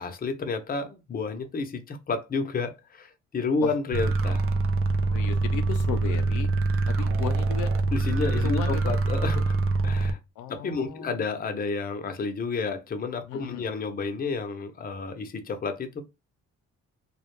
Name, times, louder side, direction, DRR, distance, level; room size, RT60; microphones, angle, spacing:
voice 1, 0.0-4.5 7.9-10.2 10.5-16.0, left 4 dB, 30° left, 0.6 m, -31 dB
sound 1, 3.9-10.1, right 3 dB, 45° right, 0.5 m, -25 dB
voice 2, 5.0-6.5 6.9-7.7 8.4-8.9 10.4-11.2 13.3-13.7, left 8 dB, 85° left, 0.5 m, -35 dB
2.3 x 2.1 x 3.0 m
cardioid pair, 90°, 30 cm